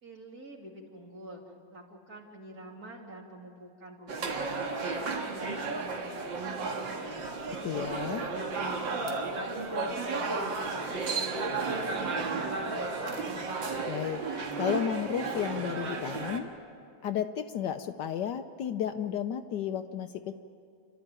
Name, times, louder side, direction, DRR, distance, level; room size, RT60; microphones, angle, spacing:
voice 1, 0.0-13.6, right 1 dB, 50° right, -1 dB, 3.1 m, -48 dB
sound 1, 4.1-16.4, right 3 dB, 75° right, 2.4 m, -33 dB
voice 2, 7.6-8.2 13.9-14.2 14.6-16.5 17.0-20.4, left 9 dB, 70° left, 8 dB, 1.2 m, -33 dB
29.5 x 12.5 x 8.9 m, 2.4 s
omnidirectional pair, 2.1 m